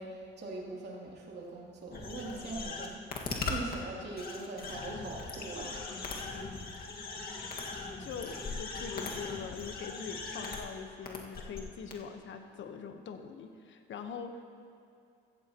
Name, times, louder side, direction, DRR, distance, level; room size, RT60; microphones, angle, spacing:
voice 1, 0.0-5.9, right 2 dB, 55° right, -3 dB, 3.1 m, -42 dB
sound 1, 1.9-3.7 4.2-10.6 11.1-11.6 11.9-12.0, left 4 dB, 50° left, 1.9 m, -39 dB
voice 2, 8.0-14.4, left 6 dB, 70° left, 6 dB, 1.2 m, -43 dB
15.0 x 14.5 x 3.0 m, 2.5 s
cardioid pair, 90°, 20 cm